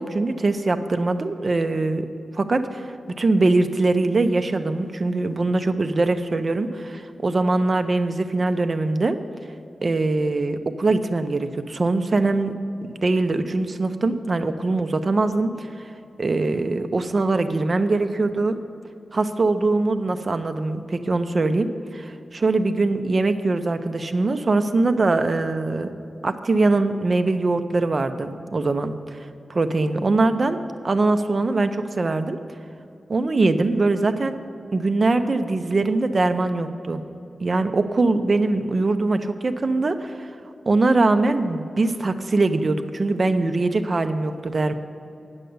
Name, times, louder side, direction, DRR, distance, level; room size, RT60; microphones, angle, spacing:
voice 1, 0.0-2.1 2.3-2.8 3.2-9.2 9.8-12.5 13.0-15.7 16.2-18.6 19.1-25.9 26.2-29.0 29.5-30.6 30.8-32.4 33.1-34.4 34.7-37.0 37.4-40.3 40.7-44.7, right 3 dB, 45° right, 8 dB, 0.7 m, -22 dB
9.7 x 6.7 x 7.9 m, 2.7 s
wide cardioid pair, 80°, 0 cm